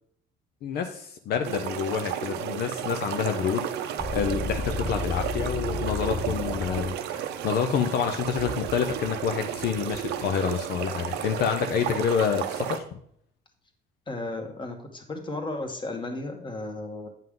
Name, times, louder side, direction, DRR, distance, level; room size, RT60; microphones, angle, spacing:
voice 1, 0.6-12.8, left 7 dB, 70° left, 5 dB, 0.7 m, -28 dB
sound 1, 1.4-12.8, right 10 dB, 80° right, 0.7 m, -33 dB
sound 2, 4.0-6.9, left 3 dB, 5° left, 0.6 m, -32 dB
voice 2, 14.1-17.1, left 2 dB, 30° left, 4 dB, 1.5 m, -34 dB
9.1 x 5.6 x 3.8 m, 0.66 s
cardioid pair, 110°, 17 cm